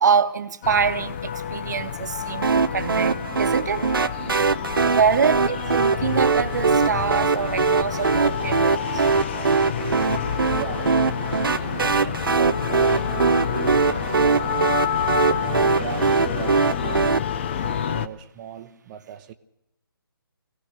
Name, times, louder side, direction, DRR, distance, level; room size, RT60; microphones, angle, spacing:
voice 1, 0.0-3.9 4.8-9.3, right 6 dB, 50° right, 1.4 m, -25 dB
sound 1, 0.6-18.1, left 8 dB, 30° left, 0.9 m, -29 dB
sound 2, 2.4-17.2, right 5 dB, 70° right, 0.7 m, -22 dB
sound 3, 6.2-9.2 10.4-13.7, equal, 75° left, 3.9 m, -44 dB
voice 2, 10.5-14.8 15.3-19.3, right 10 dB, 20° right, 1.1 m, -37 dB
25.0 x 17.5 x 6.6 m
figure-of-eight pair, 150°, 12 cm